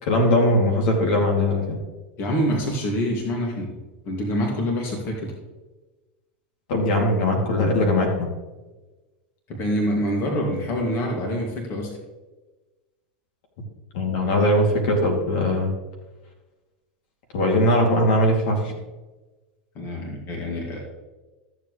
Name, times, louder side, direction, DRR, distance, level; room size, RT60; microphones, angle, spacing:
voice 1, 0.0-1.8 6.7-8.3 13.9-15.7 17.3-18.7, left 1 dB, 65° left, 1 dB, 2.8 m, -20 dB
voice 2, 2.2-3.7 4.0-5.3 9.5-12.0 19.7-20.8, equal, 45° left, 0 dB, 2.4 m, -26 dB
14.0 x 7.5 x 3.3 m, 1.2 s
hypercardioid pair, 110°, 6 cm